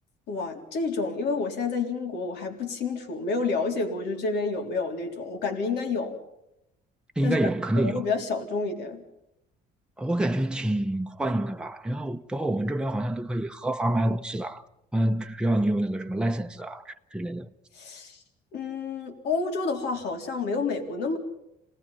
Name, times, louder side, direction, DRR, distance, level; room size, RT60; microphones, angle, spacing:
voice 1, 0.3-6.2 7.2-7.4 7.8-9.0 17.8-18.2 18.5-21.2, left 4 dB, 80° left, 3.6 m, -29 dB
voice 2, 7.2-8.0 10.0-14.7 14.9-17.5, right 1 dB, 5° right, 0.9 m, -27 dB
27.5 x 19.0 x 5.6 m
cardioid pair, 110°, 17 cm